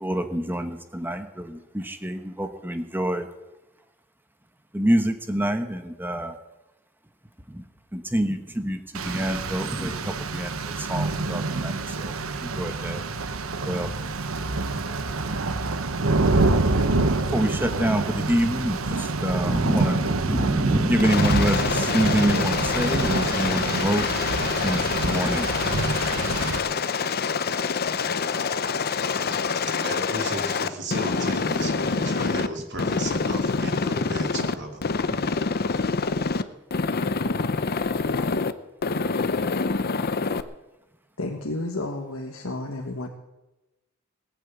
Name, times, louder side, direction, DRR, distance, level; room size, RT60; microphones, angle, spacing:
voice 1, 0.0-1.2 1.9-3.2 4.7-6.3 8.1-8.4 8.6-8.8 9.0-9.9 10.3-10.5 10.9-11.7 12.6-13.0 13.7-13.9 17.3-18.0 18.3-18.8 19.2-20.0 20.3-21.6 21.9-24.0 24.6-25.4, right 1 dB, 10° right, 1.0 m, -25 dB
Rain, 8.9-26.6, right 3 dB, 80° right, 1.0 m, -26 dB
Aircraft, 21.0-32.5 32.8-34.5 34.8-36.4 36.7-38.5 38.8-40.4, left 4 dB, 50° left, 0.7 m, -26 dB
voice 2, 29.2-34.8, right 1 dB, 60° right, 2.8 m, -34 dB
voice 3, 41.2-43.1, left 2 dB, 90° left, 1.6 m, -31 dB
18.5 x 8.7 x 8.2 m
head